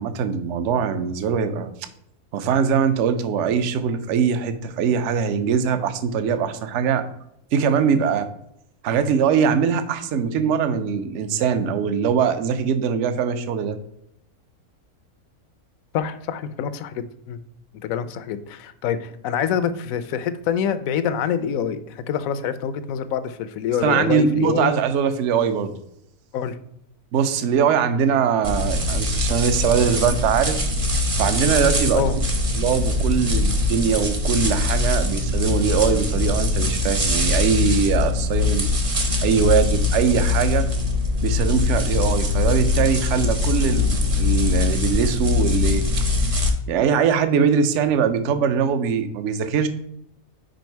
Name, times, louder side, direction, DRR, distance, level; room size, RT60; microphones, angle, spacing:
voice 1, 0.0-1.7 2.3-7.1 7.5-8.3 8.8-13.8 23.8-25.7 27.1-30.6 31.2-32.0 32.5-38.7 39.2-40.7 41.2-46.0 46.7-49.7, right 7 dB, 65° right, 10 dB, 0.9 m, -22 dB
voice 2, 15.9-17.4 17.8-24.7 26.3-26.6 31.9-32.1, left 8 dB, 75° left, 13 dB, 0.9 m, -26 dB
sound 1, 28.4-46.5, left 3 dB, 30° right, 0.7 m, -22 dB
5.2 x 4.8 x 4.5 m, 0.77 s
omnidirectional pair, 1.5 m